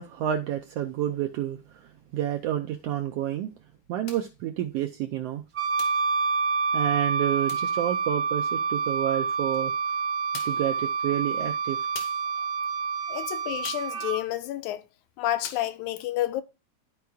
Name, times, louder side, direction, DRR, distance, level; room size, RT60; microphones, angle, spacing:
voice 1, 0.0-3.5 3.9-5.4 6.7-9.7 10.4-11.9, right 12 dB, 80° right, 1.4 m, -29 dB
sound 1, 4.1-4.4 5.8-6.1 7.5-7.8 9.5-9.6 10.3-10.7 11.9-12.3 13.6-14.0 15.4-15.8, left 6 dB, 70° left, 2.4 m, -43 dB
Wind instrument woodwind instrument, 5.6-14.2, right 5 dB, 65° right, 1.0 m, -28 dB
voice 2, 13.1-14.8 15.2-16.4, left 14 dB, 85° left, 2.0 m, -30 dB
13.0 x 4.6 x 2.3 m
omnidirectional pair, 3.4 m